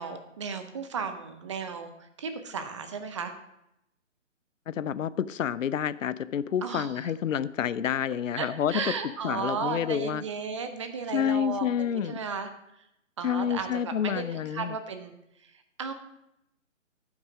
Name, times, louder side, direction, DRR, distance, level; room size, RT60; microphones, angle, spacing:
voice 1, 0.0-3.3 6.6-7.1 8.4-12.5 13.2-15.1 15.4-15.9, right 5 dB, 25° right, 8 dB, 0.6 m, -35 dB
voice 2, 4.7-8.8 9.2-10.2 11.1-12.2 13.2-14.8, left 9 dB, 75° left, 17 dB, 0.5 m, -29 dB
11.0 x 6.1 x 4.9 m, 0.83 s
figure-of-eight pair, 140°, 39 cm